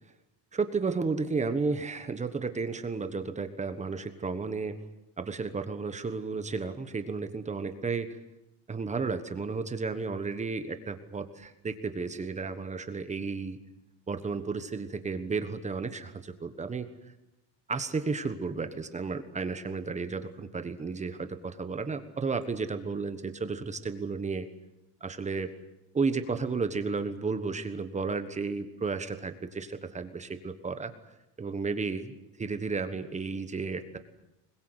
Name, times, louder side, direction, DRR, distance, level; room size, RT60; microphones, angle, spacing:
voice 1, 0.5-4.8 5.2-8.1 8.7-13.6 14.1-16.9 17.7-24.5 25.0-25.5 25.9-30.9 31.4-34.0, right 4 dB, 15° right, 9 dB, 1.3 m, -33 dB
24.5 x 22.0 x 8.1 m, 0.91 s
cardioid pair, 175°, 46 cm